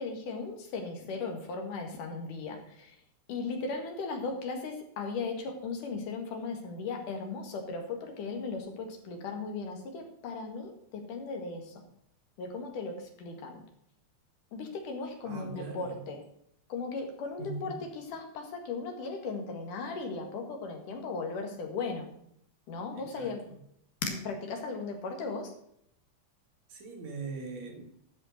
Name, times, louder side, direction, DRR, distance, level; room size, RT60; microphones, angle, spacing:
voice 1, 0.0-3.0 3.3-11.8 12.4-13.6 14.5-16.2 16.7-22.1 22.7-23.4 24.0-25.5, left 4 dB, 80° left, 4 dB, 3.4 m, -37 dB
voice 2, 15.2-16.0 17.4-17.9 22.9-23.6 26.7-27.8, right 3 dB, 60° right, 3 dB, 3.0 m, -41 dB
12.5 x 5.5 x 6.5 m, 0.71 s
omnidirectional pair, 3.6 m